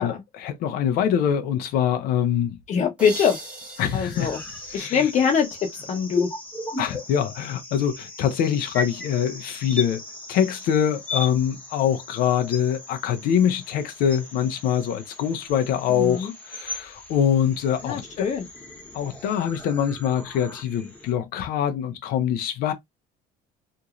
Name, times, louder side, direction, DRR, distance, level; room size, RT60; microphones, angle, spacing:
voice 1, 0.0-2.6 3.8-4.3 4.7-5.1 6.8-10.0 10.3-18.3 18.9-22.7, left 9 dB, 75° left, 0.7 m, -24 dB
voice 2, 2.7-3.4 3.9-4.4 4.7-5.5 5.9-6.3 15.9-16.3 17.8-18.5, left 6 dB, 50° left, 1.0 m, -23 dB
sound 1, 3.0-5.7, right 1 dB, 5° right, 1.3 m, -40 dB
sound 2, 4.1-21.1, left 2 dB, 10° left, 1.2 m, -37 dB
2.9 x 2.7 x 2.4 m
cardioid pair, 105°, 16 cm